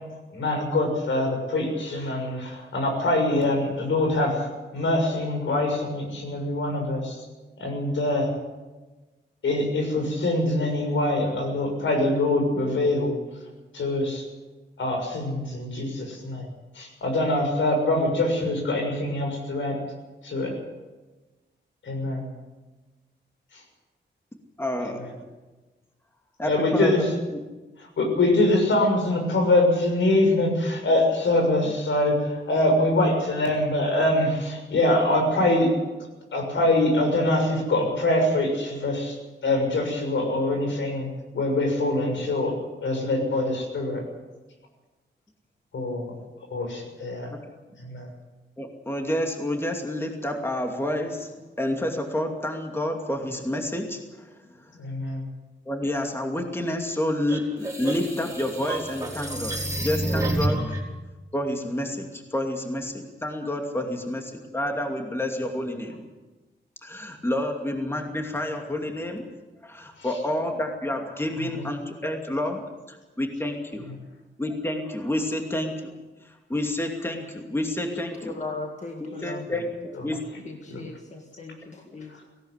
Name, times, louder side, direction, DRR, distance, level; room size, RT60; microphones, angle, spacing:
voice 1, 0.3-7.3 7.6-8.3 9.4-13.4 13.7-14.3 14.8-16.5 16.7-19.8 20.2-20.5 21.8-22.3 23.5-23.6 24.9-25.1 26.4-27.1 27.8-35.7 36.3-39.2 39.4-41.1 41.3-42.6 42.8-44.0 45.7-46.1 46.5-47.3 47.8-48.1 54.7-55.2 70.0-70.2 71.3-71.7 73.8-74.0 79.2-79.6 79.9-80.0 80.6-80.8 82.1-82.3, left 1 dB, 80° left, 2 dB, 6.7 m, -24 dB
voice 2, 24.6-25.0 26.4-27.1 48.6-54.0 55.7-60.6 61.3-66.0 66.8-69.3 69.6-72.6 72.9-73.9 74.4-75.7 76.5-78.3 79.0-79.7 80.0-80.2 81.9-82.0, left 1 dB, 10° left, 2 dB, 2.5 m, -29 dB
sound 1, 57.3-60.8, right 1 dB, 15° right, 5.0 m, -29 dB
voice 3, 78.2-79.5 80.5-82.2, left 3 dB, 40° left, 3 dB, 2.0 m, -38 dB
18.5 x 17.5 x 8.2 m, 1.2 s
wide cardioid pair, 115°, 19 cm